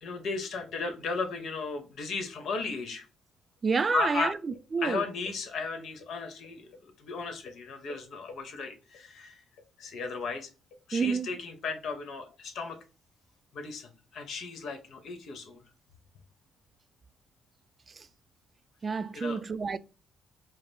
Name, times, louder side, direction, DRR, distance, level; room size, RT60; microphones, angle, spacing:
voice 1, 0.0-3.1 3.9-4.3 4.8-9.4 9.8-10.5 10.9-12.8 13.5-15.6 19.1-19.4, left 4 dB, 70° left, 1.1 m, -35 dB
voice 2, 3.6-4.3 4.7-5.0 10.9-11.3 18.0-18.1 18.8-19.8, right 5 dB, 35° right, 0.4 m, -28 dB
4.8 x 2.0 x 3.4 m
cardioid pair, 90°, 0 cm